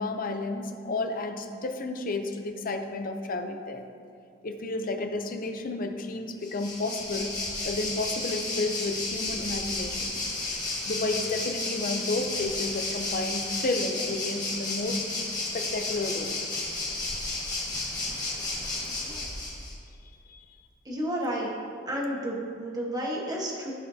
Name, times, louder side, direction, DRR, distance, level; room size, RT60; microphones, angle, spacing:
voice 1, 0.0-3.8 4.4-7.3 7.6-10.1 10.9-15.1 15.5-16.3 20.3-20.4, left 2 dB, 45° left, 5 dB, 0.6 m, -31 dB
Waves surf, 6.4-19.7, left 2 dB, 20° left, 1.7 m, -32 dB
voice 2, 18.8-19.3 20.8-21.5 21.9-23.7, equal, 20° right, -3 dB, 1.3 m, -32 dB
15.5 x 5.5 x 2.8 m, 2.4 s
head